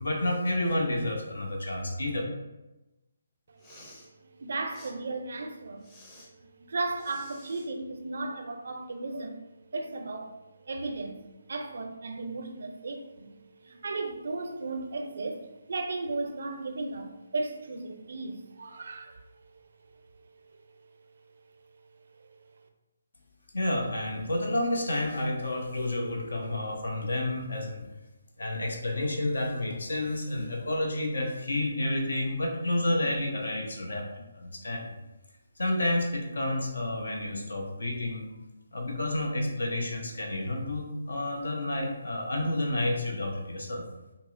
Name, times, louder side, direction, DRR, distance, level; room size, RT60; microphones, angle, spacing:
voice 1, 0.0-2.2 23.5-27.9 28.4-34.9 35.6-38.3 38.7-43.8, left 1 dB, 75° left, 0.7 m, -30 dB
Respiratory sounds, 3.5-4.1 4.7-4.9 5.8-6.3 7.0-7.7, left 1 dB, 20° left, 0.7 m, -52 dB
voice 2, 4.2-5.8 6.4-9.4 9.7-13.3 13.6-19.2 19.5-19.6 22.2-22.3, right 3 dB, 65° right, 0.4 m, -35 dB
5.3 x 2.0 x 2.4 m
figure-of-eight pair, 150°, 0 cm